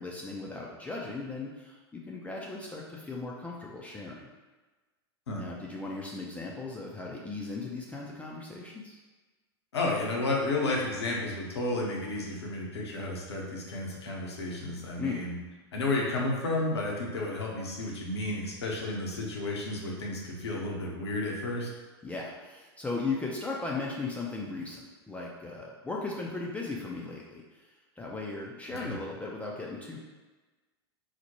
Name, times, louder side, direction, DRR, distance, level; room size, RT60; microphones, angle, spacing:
voice 1, 0.0-4.3 5.4-9.0 15.0-15.2 22.0-30.0, left 3 dB, 10° left, -3 dB, 0.4 m, -37 dB
voice 2, 9.7-15.3 15.7-21.7 28.8-28.9, left 2 dB, 80° left, -2 dB, 0.8 m, -32 dB
4.2 x 2.1 x 2.9 m, 1.3 s
hypercardioid pair, 90°, 14 cm